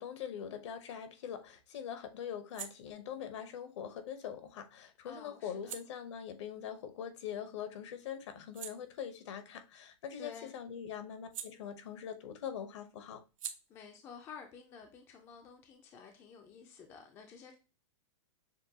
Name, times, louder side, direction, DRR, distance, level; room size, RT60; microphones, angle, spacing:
voice 1, 0.0-13.2, left 8 dB, 60° left, 0.8 m, -43 dB
sound 1, 0.8-7.6 8.0-12.3 12.5-15.9, right 9 dB, 75° right, 0.6 m, -52 dB
voice 2, 5.0-5.8 10.2-10.5 13.7-17.5, left 6 dB, 15° left, 0.4 m, -51 dB
6.5 x 2.2 x 2.7 m
supercardioid pair, 160°, 17 cm